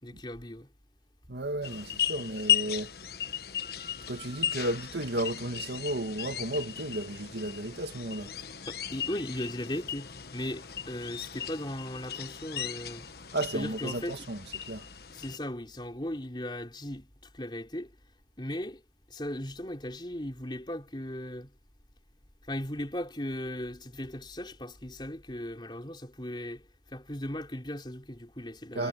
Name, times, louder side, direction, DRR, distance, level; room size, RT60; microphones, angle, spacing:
voice 1, 0.0-0.7 8.7-13.1 13.5-14.2 15.1-17.1 17.3-17.9 18.4-18.8 19.1-21.5 22.5-26.6 26.9-28.9, left 1 dB, 25° left, 4.2 m, -37 dB
voice 2, 1.3-2.9 4.1-8.3 13.3-14.9 28.8-28.9, right 1 dB, 80° right, 2.2 m, -33 dB
sound 1, 1.6-15.4, left 10 dB, 60° left, 1.3 m, -36 dB
head